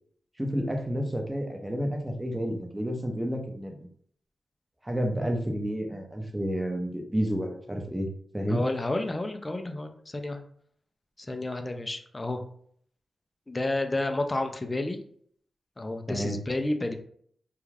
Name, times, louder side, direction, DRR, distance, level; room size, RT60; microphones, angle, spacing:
voice 1, 0.4-3.8 4.8-8.1 8.3-8.6 16.1-16.4, equal, 15° right, 3 dB, 0.7 m, -30 dB
voice 2, 8.5-10.4 11.2-12.4 13.5-15.0 15.8-16.9, left 2 dB, 30° left, 6 dB, 0.4 m, -30 dB
2.3 x 2.3 x 3.2 m, 0.62 s
cardioid pair, 55°, 0 cm